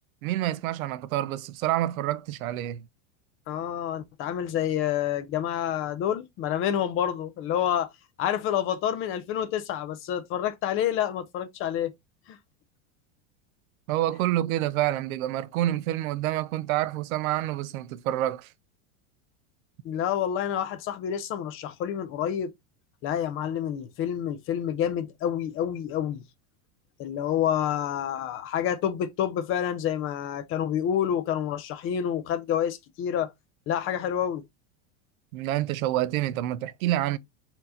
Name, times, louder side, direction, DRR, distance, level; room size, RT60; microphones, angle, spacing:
voice 1, 0.2-2.9 13.9-18.5 35.3-37.2, right 14 dB, 85° right, 0.6 m, -28 dB
voice 2, 3.5-7.9 8.2-11.9 12.3-12.4 19.8-22.5 23.0-26.2 27.0-33.3 33.7-34.4, left 10 dB, 30° left, 0.6 m, -28 dB
4.4 x 2.8 x 3.7 m
supercardioid pair, 145°, 41 cm